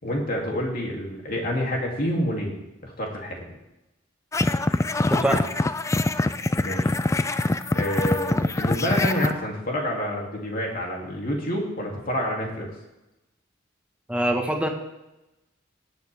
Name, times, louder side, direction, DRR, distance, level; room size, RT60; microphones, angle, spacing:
voice 1, 0.0-2.5 2.8-3.6 6.6-6.9 7.7-12.7, equal, 50° left, -1 dB, 2.8 m, -28 dB
sound 1, 4.3-9.3, left 2 dB, 15° left, 0.3 m, -24 dB
voice 2, 5.1-5.4 14.1-14.7, right 1 dB, 5° right, 2 dB, 1.3 m, -23 dB
18.0 x 8.5 x 3.5 m, 0.95 s
head